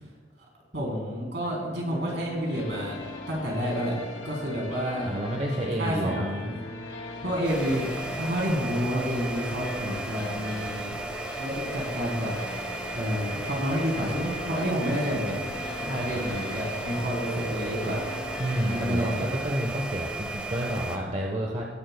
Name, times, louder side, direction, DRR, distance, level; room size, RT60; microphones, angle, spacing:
voice 1, 0.7-3.0 3.3-4.0 4.2-5.1 5.8-6.6 7.2-7.8 8.2-11.0 11.4-15.4 15.8-19.3, equal, 70° right, -2 dB, 3.5 m, -29 dB
sound 1, 1.4-18.9, left 2 dB, 85° left, 2.4 m, -40 dB
voice 2, 5.0-6.2 15.8-16.1 18.4-21.6, right 1 dB, 35° right, -1 dB, 1.0 m, -30 dB
sound 2, 7.4-21.0, right 2 dB, 5° right, 0.9 m, -35 dB
18.5 x 11.0 x 2.2 m, 1.5 s
head